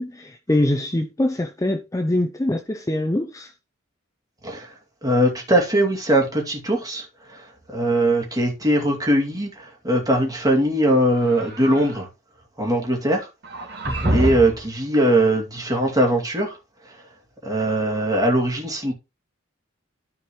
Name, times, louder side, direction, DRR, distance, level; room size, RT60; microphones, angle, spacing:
voice 1, 0.0-3.5 13.9-14.1, left 1 dB, 15° left, 0.5 m, -24 dB
voice 2, 5.0-7.0 7.3-7.4 7.7-12.1 12.6-13.3 14.1-16.5 17.4-18.9, right 1 dB, 20° right, 2.5 m, -20 dB
sound 1, 11.1-12.0 13.4-14.7, right 1 dB, 55° right, 2.9 m, -26 dB
13.5 x 4.6 x 3.2 m
head